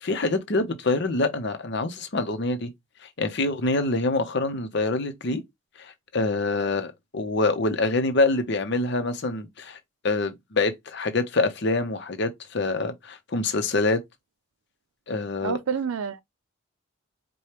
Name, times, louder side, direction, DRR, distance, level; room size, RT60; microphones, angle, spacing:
voice 1, 0.0-2.7 3.2-5.4 5.8-9.8 10.0-14.0 15.1-15.6, left 2 dB, 55° left, 0.7 m, -25 dB
voice 2, 15.4-16.2, right 6 dB, 85° right, 0.4 m, -28 dB
4.9 x 2.2 x 2.9 m
head